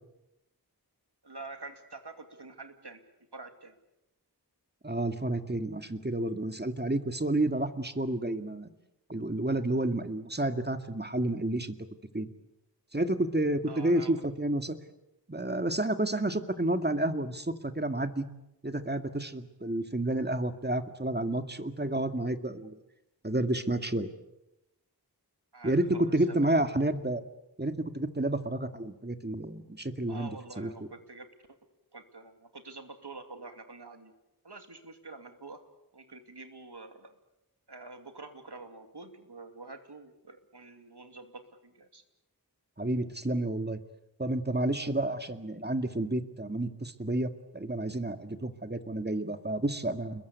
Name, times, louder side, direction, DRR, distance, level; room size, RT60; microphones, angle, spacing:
voice 1, 1.2-3.0 3.3-3.7 13.7-14.1 25.5-26.5 30.1-31.6 31.9-34.1 34.4-35.7 35.9-37.1 37.7-42.0, right 3 dB, 80° right, 7 dB, 2.8 m, -47 dB
voice 2, 4.8-8.7 9.1-11.8 12.1-12.3 12.9-14.8 15.3-18.3 18.6-22.8 23.2-24.1 25.6-27.2 27.6-30.3 30.6-30.7 42.8-43.8 44.2-50.2, right 1 dB, 25° right, 8 dB, 2.2 m, -30 dB
29.5 x 22.0 x 8.3 m, 0.90 s
wide cardioid pair, 45°, 40 cm